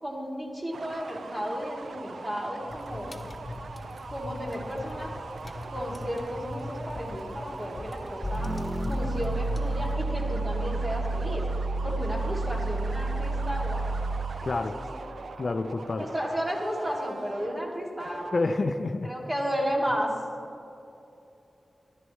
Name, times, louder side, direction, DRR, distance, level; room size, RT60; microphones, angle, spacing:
voice 1, 0.0-3.2 4.1-5.1 5.7-8.5 8.9-11.4 11.8-13.9 14.7-15.0 16.0-18.2 19.0-20.1, equal, 30° right, -3 dB, 2.8 m, -33 dB
sound 1, 0.7-18.9, right 4 dB, 85° right, 0.5 m, -42 dB
sound 2, 2.7-9.9, left 1 dB, 40° left, 1.1 m, -41 dB
sound 3, 8.2-14.4, right 2 dB, 20° left, 0.8 m, -30 dB
voice 2, 14.4-14.8 15.4-16.1 18.3-19.1, left 3 dB, 60° left, 8 dB, 0.6 m, -28 dB
14.0 x 12.0 x 3.3 m, 2.8 s
wide cardioid pair, 65°, 0 cm